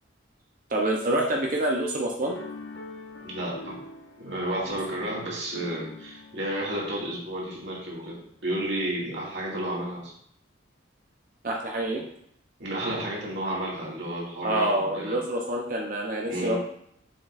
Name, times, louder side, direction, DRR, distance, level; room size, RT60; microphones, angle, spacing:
voice 1, 0.7-2.4 11.4-12.0 14.4-16.6, right 1 dB, 45° right, -1 dB, 0.8 m, -27 dB
sound 1, 2.2-7.8, left 3 dB, 65° left, 1.2 m, -45 dB
voice 2, 3.2-3.8 4.2-10.1 12.6-15.2 16.3-16.6, right 1 dB, 65° right, -5 dB, 2.4 m, -32 dB
7.6 x 6.7 x 2.6 m, 0.70 s
head